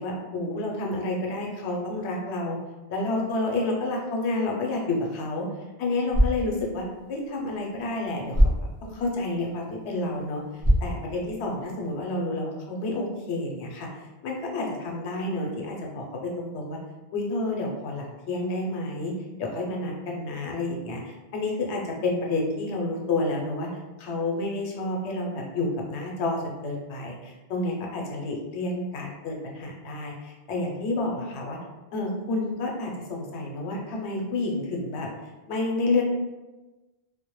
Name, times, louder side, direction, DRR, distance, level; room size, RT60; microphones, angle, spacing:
voice 1, 0.0-2.6 2.9-5.5 5.8-8.5 8.8-10.4 10.8-13.9 14.2-16.8 17.1-19.1 19.4-23.7 24.0-31.6 31.9-35.1 35.5-36.0, left 2 dB, 85° left, 0 dB, 0.9 m, -29 dB
sound 1, 5.9-12.0, equal, 20° right, 0.4 m, -28 dB
2.1 x 2.1 x 2.9 m, 1.1 s
omnidirectional pair, 1.1 m